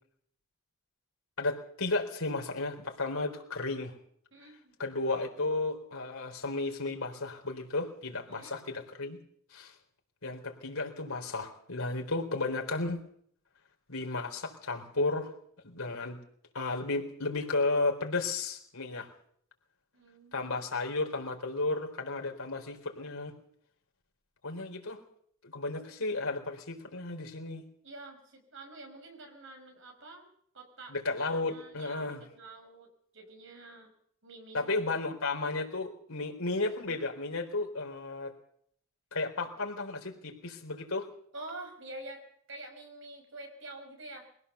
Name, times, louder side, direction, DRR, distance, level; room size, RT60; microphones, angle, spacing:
voice 1, 1.4-3.9 4.8-9.2 9.5-9.7 10.2-13.0 13.9-15.3 15.6-16.2 16.5-19.1 20.3-23.3 24.4-25.0 25.5-27.7 30.9-32.2 34.5-38.3 39.1-41.1, left 3 dB, 85° left, 2 dB, 4.1 m, -33 dB
voice 2, 4.3-4.7 8.3-8.6 19.9-20.5 25.7-25.8 27.8-32.9 33.1-33.9 34.2-34.9 41.3-42.2 42.5-44.3, right 2 dB, 60° right, 4 dB, 5.6 m, -47 dB
22.5 x 16.5 x 6.9 m, 0.66 s
head